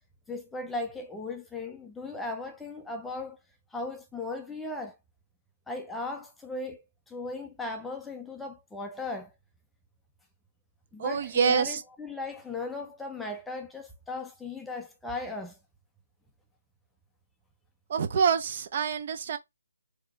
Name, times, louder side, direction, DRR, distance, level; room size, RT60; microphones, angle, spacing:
voice 1, 0.3-3.4 3.7-5.0 5.7-6.8 7.1-9.3 10.9-15.6, left 2 dB, 5° left, 0.5 m, -37 dB
voice 2, 11.0-11.8 17.9-19.4, right 6 dB, 40° right, 0.7 m, -26 dB
4.6 x 2.8 x 2.4 m
figure-of-eight pair, 145°, 0 cm